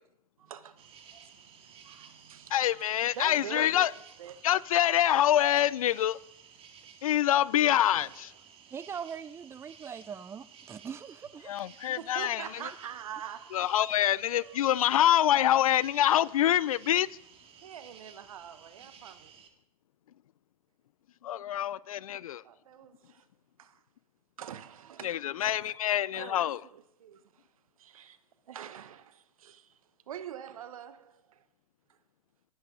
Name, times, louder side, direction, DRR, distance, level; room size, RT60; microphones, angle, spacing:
voice 1, 0.4-2.6 3.1-3.9 4.2-4.5 7.9-8.1 12.0-13.7 14.3-14.6 17.6-19.3 22.4-23.3 23.6-23.8 24.4-25.8 26.1-27.5 27.8-28.2 28.5-29.8 30.1-31.4, right 9 dB, 75° right, 0.9 m, -45 dB
sound 1, 0.8-19.5, right 7 dB, 30° right, 1.8 m, -55 dB
voice 2, 2.5-3.9 4.4-6.2 7.0-8.3 11.5-12.5 13.5-17.1 21.2-22.4 25.0-26.6, left 11 dB, 75° left, 0.4 m, -25 dB
voice 3, 8.7-11.5, right 7 dB, 15° right, 0.5 m, -41 dB
19.5 x 8.4 x 3.8 m
hypercardioid pair, 100°, 18 cm